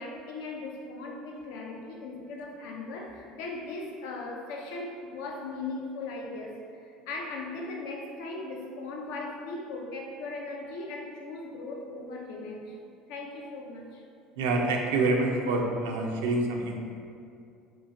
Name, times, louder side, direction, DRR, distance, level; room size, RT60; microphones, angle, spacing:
voice 1, 0.0-12.8 13.1-14.0, left 2 dB, 80° left, 0 dB, 0.4 m, -38 dB
voice 2, 14.4-16.7, right 2 dB, 90° right, 1 dB, 0.3 m, -26 dB
2.9 x 2.4 x 2.5 m, 2.4 s
supercardioid pair, 100°, 0 cm